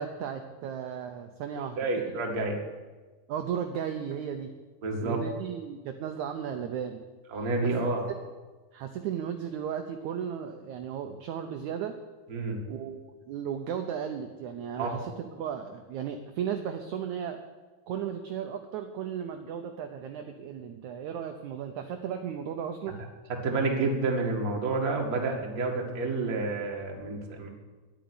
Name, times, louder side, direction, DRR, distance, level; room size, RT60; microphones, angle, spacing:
voice 1, 0.0-1.8 3.3-4.5 5.0-7.0 7.6-7.7 8.7-12.0 12.7-17.4 17.9-23.0, right 8 dB, 75° right, 6 dB, 1.8 m, -35 dB
voice 2, 1.8-2.6 4.8-5.3 7.3-8.1 12.3-12.6 14.8-15.0 23.3-27.5, right 3 dB, 35° right, 1 dB, 1.6 m, -29 dB
10.5 x 9.1 x 9.6 m, 1.3 s
omnidirectional pair, 4.2 m